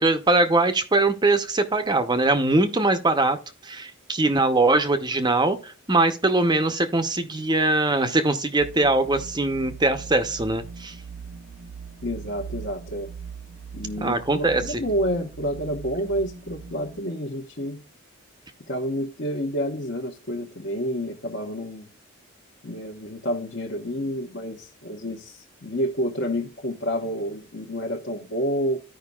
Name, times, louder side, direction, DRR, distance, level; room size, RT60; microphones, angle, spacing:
voice 1, 0.0-3.4 3.6-10.9 14.0-14.8, right 2 dB, 20° right, 0.7 m, -22 dB
sound 1, 8.6-17.0, right 6 dB, 70° right, 0.7 m, -40 dB
voice 2, 12.0-13.1 13.7-17.8 18.7-21.9 22.6-28.8, equal, 50° left, 1.1 m, -29 dB
14.0 x 5.2 x 2.3 m
head